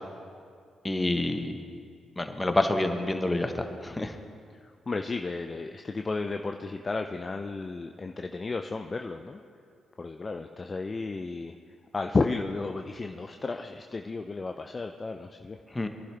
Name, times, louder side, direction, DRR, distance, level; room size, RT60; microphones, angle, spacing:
voice 1, 0.8-1.6 2.2-4.2 15.7-15.9, left 2 dB, 20° left, 6 dB, 1.3 m, -28 dB
voice 2, 4.6-9.4 10.0-11.5 11.9-15.6, left 3 dB, 35° left, 5 dB, 0.6 m, -33 dB
23.0 x 11.5 x 3.5 m, 2.2 s
hypercardioid pair, 45°, 0 cm